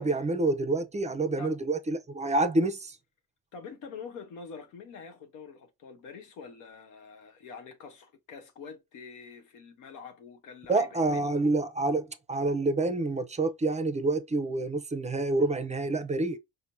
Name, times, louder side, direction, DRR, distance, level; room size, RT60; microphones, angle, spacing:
voice 1, 0.0-3.0 10.7-16.4, right 2 dB, 25° right, 0.5 m, -28 dB
voice 2, 3.5-11.4, left 5 dB, 90° left, 0.9 m, -46 dB
4.5 x 2.1 x 2.6 m
cardioid pair, 90°, 30 cm